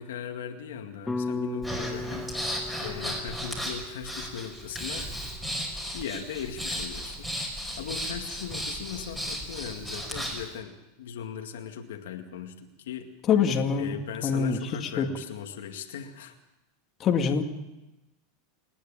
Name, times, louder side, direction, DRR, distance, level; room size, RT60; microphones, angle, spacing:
voice 1, 0.0-2.3 2.8-5.1 5.9-13.1 13.8-16.3, left 8 dB, 90° left, 4 dB, 2.2 m, -38 dB
sound 1, 1.1-5.3, left 3 dB, 10° left, 0.6 m, -37 dB
Breathing, 1.6-10.5, equal, 5° right, 5.2 m, -35 dB
voice 2, 13.3-14.6 15.0-15.1 17.0-17.4, left 6 dB, 35° left, 3 dB, 2.2 m, -24 dB
29.0 x 10.0 x 8.8 m, 0.99 s
supercardioid pair, 130°, 0 cm